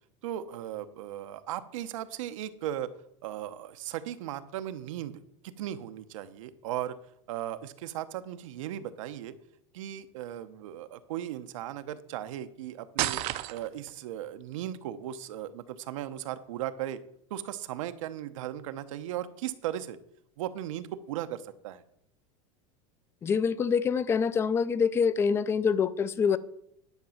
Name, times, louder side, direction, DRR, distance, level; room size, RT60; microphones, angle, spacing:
voice 1, 0.2-2.9 3.2-7.0 7.3-9.3 9.7-13.2 13.5-17.0 17.3-20.0 20.4-21.8, right 12 dB, 85° right, 0.9 m, -37 dB
sound 1, 13.0-13.9, right 16 dB, 45° right, 0.5 m, -30 dB
voice 2, 23.2-26.4, left 6 dB, 15° left, 0.3 m, -25 dB
10.5 x 5.1 x 7.1 m
supercardioid pair, 160°, 16 cm